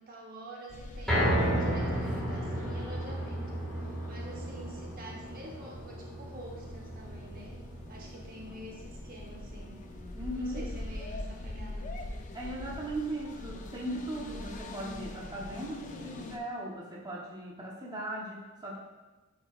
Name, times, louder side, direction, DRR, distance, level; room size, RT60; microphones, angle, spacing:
voice 1, 0.0-7.5 7.9-9.7 10.3-11.9, right 1 dB, 45° right, -1 dB, 0.8 m, -47 dB
sound 1, 0.7-16.4, left 2 dB, 35° left, 0.5 m, -44 dB
sound 2, 1.1-13.3 13.7-13.8 14.3-14.4, equal, ahead, 1.7 m, -34 dB
voice 2, 10.1-10.7 12.3-18.8, right 1 dB, 20° right, -3 dB, 0.9 m, -38 dB
9.5 x 4.6 x 2.4 m, 1.2 s
head